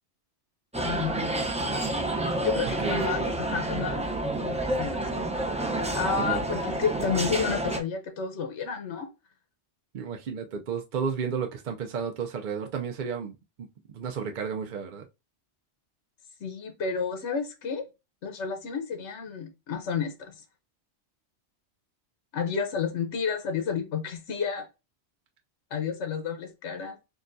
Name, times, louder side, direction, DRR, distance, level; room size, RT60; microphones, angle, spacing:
sound 1, 0.7-7.8, right 2 dB, 10° right, 0.4 m, -29 dB
voice 1, 0.8-1.5 2.4-4.1 4.4-5.2 5.9-9.1 16.4-17.9 18.2-20.3 22.3-24.7 25.7-27.0, left 6 dB, 75° left, 1.1 m, -31 dB
voice 2, 2.8-3.1 6.2-6.4 9.9-13.4 13.9-15.0, right 6 dB, 55° right, 0.6 m, -32 dB
6.2 x 2.3 x 2.5 m
omnidirectional pair, 1.2 m